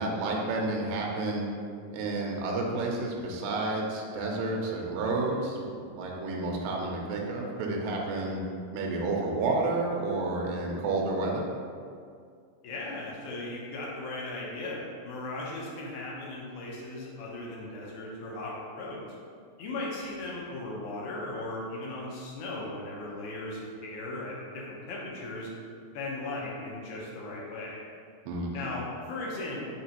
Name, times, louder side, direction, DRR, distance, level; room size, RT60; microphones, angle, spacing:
voice 1, 0.0-1.5 1.9-8.4 8.7-11.4 28.3-28.7, right 2 dB, 80° right, -1 dB, 2.0 m, -30 dB
voice 2, 12.6-19.0 19.6-25.5 25.9-27.8 28.5-29.6, left 2 dB, 75° left, -4 dB, 1.8 m, -37 dB
5.6 x 3.0 x 2.8 m, 2.2 s
omnidirectional pair, 4.2 m